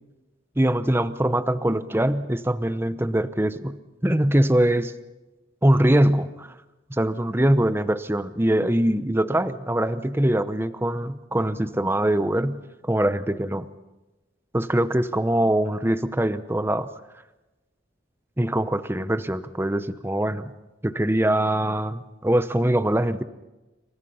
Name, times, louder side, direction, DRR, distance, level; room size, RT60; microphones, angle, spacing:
voice 1, 0.6-4.9 5.6-6.5 6.9-13.6 14.5-16.9 18.4-20.5 20.8-23.2, right 1 dB, 10° right, 12 dB, 0.8 m, -23 dB
27.5 x 25.0 x 5.6 m, 1.1 s
head